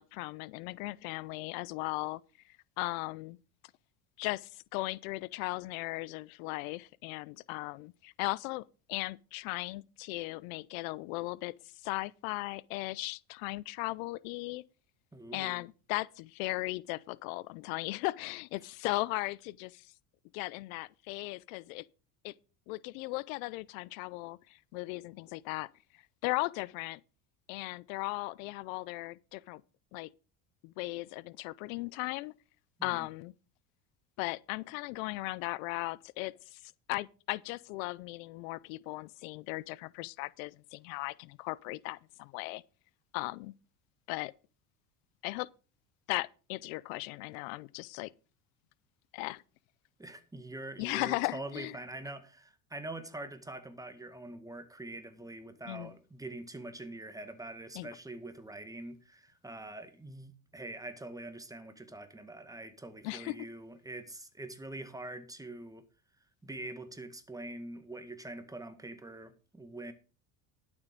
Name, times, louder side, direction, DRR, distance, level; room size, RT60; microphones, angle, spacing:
voice 1, 0.0-2.2 2.8-3.4 4.2-11.5 11.8-14.6 15.3-19.9 20.3-21.8 22.2-22.3 22.7-25.7 26.2-27.0 27.5-29.6 29.9-30.1 30.6-32.3 32.8-33.3 34.2-36.6 36.9-42.6 43.1-43.5 44.1-44.3 45.2-45.5 46.1-48.1 49.1-49.4 50.8-51.7 55.7-55.9 57.8-57.9 63.0-63.3, left 22 dB, 80° left, 0.6 m, -37 dB
voice 2, 15.1-15.6 32.8-33.1 50.0-65.8 66.4-69.9, right 2 dB, 10° right, 1.7 m, -44 dB
11.5 x 7.1 x 5.2 m
supercardioid pair, 110°, 40 cm